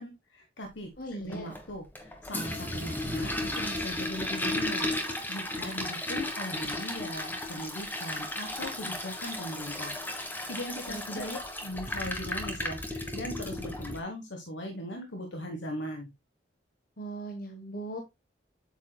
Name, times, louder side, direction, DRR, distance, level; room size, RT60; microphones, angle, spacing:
voice 1, 0.0-16.1, equal, 75° left, 4 dB, 1.3 m, -39 dB
voice 2, 1.0-1.5 10.9-11.3 17.0-18.0, right 1 dB, 50° left, 4 dB, 1.2 m, -39 dB
Toilet flush, 1.3-14.0, left 1 dB, 10° left, 1.3 m, -34 dB
8.3 x 7.3 x 2.3 m, 0.21 s
head